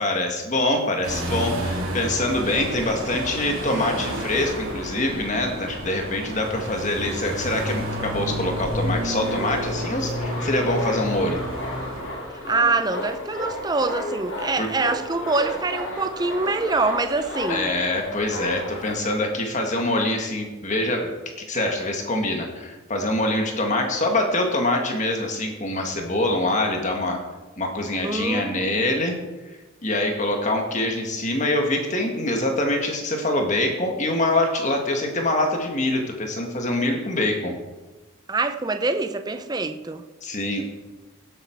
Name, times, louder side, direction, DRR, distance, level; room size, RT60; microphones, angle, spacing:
voice 1, 0.0-11.4 14.6-14.7 17.5-21.1 21.5-27.2 27.6-29.2 29.8-37.6 40.2-40.6, left 1 dB, 35° left, 3 dB, 1.8 m, -24 dB
sound 1, 1.0-12.0, equal, 80° right, 3.4 m, -30 dB
sound 2, 9.1-18.9, left 1 dB, 65° left, 3.0 m, -33 dB
voice 2, 12.5-17.7 28.0-28.9 38.3-40.0, right 3 dB, 20° right, 8 dB, 0.6 m, -25 dB
17.5 x 8.3 x 4.6 m, 1.2 s
head